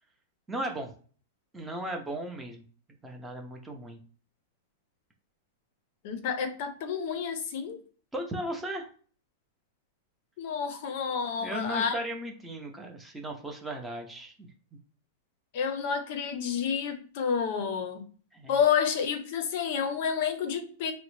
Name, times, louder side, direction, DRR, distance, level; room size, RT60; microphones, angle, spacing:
voice 1, 0.5-0.9 1.5-2.6 3.0-4.0 8.1-8.9 11.4-14.5 18.3-18.6, right 1 dB, 5° right, 0.5 m, -36 dB
voice 2, 6.0-7.8 10.4-11.9 15.5-18.0 18.5-20.9, left 7 dB, 45° left, 0.5 m, -29 dB
3.7 x 2.0 x 3.0 m
supercardioid pair, 175°, 0 cm